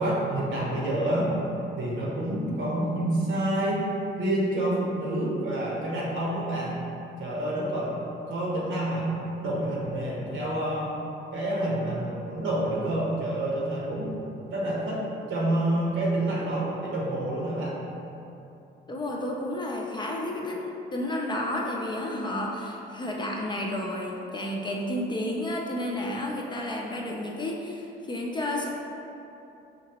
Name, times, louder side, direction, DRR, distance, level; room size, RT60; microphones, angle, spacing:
voice 1, 0.0-1.3 1.8-3.8 4.2-6.8 7.2-7.9 8.3-9.1 9.4-10.9 11.3-14.1 14.5-15.0 15.3-17.8, right 1 dB, 75° right, -4 dB, 1.0 m, -28 dB
voice 2, 18.9-28.7, left 1 dB, 20° left, -1 dB, 0.5 m, -31 dB
5.0 x 2.7 x 2.9 m, 2.8 s
cardioid pair, 90°, 20 cm